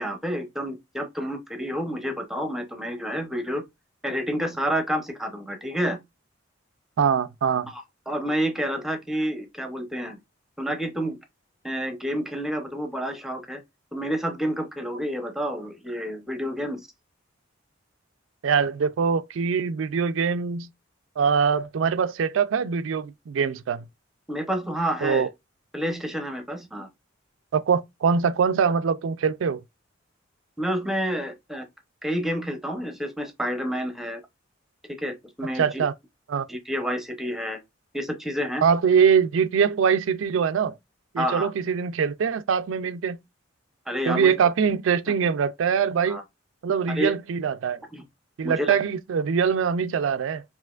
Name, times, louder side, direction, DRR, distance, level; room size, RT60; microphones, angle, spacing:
voice 1, 0.0-3.6 4.0-6.0 7.7-10.2 10.6-11.2 11.6-13.6 13.9-16.9 24.3-25.3 25.7-26.9 30.6-31.7 32.0-34.2 35.0-35.8 36.5-37.6 37.9-38.6 41.2-41.5 43.9-44.3 46.1-46.2 46.9-47.1 47.9-48.0 48.4-48.7, equal, ahead, 0.7 m, -29 dB
voice 2, 7.0-7.7 18.4-20.7 21.2-23.9 25.0-25.3 27.5-29.6 35.6-35.9 36.3-36.4 38.6-40.8 41.1-43.2 44.1-46.2 46.6-47.8 48.4-50.4, right 6 dB, 80° right, 0.4 m, -23 dB
5.5 x 2.8 x 2.4 m
head